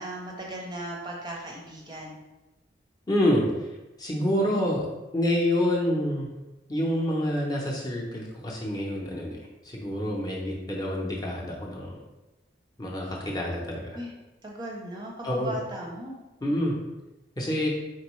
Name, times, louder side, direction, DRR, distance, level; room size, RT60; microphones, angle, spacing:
voice 1, 0.0-2.2 13.9-14.1 14.4-16.2, right 1 dB, 20° right, -2 dB, 0.5 m, -37 dB
voice 2, 3.1-3.5 4.0-4.9 5.1-6.3 6.7-9.4 9.6-12.0 12.8-14.0 15.2-15.5 16.4-16.7 17.4-17.7, left 1 dB, 20° left, -2 dB, 0.7 m, -27 dB
4.3 x 3.6 x 3.1 m, 1.1 s
head